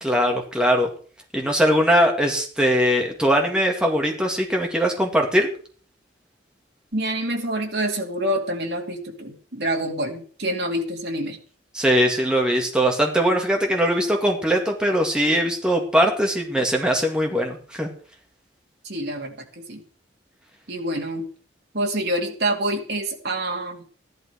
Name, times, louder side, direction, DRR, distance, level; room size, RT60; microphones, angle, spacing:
voice 1, 0.0-0.9 1.3-5.5 11.7-17.9, equal, 5° right, 1 dB, 2.1 m, -21 dB
voice 2, 6.9-11.4 18.8-19.8 20.7-21.3 21.7-23.8, right 1 dB, 60° right, 2 dB, 2.5 m, -27 dB
14.0 x 11.5 x 4.7 m, 0.43 s
head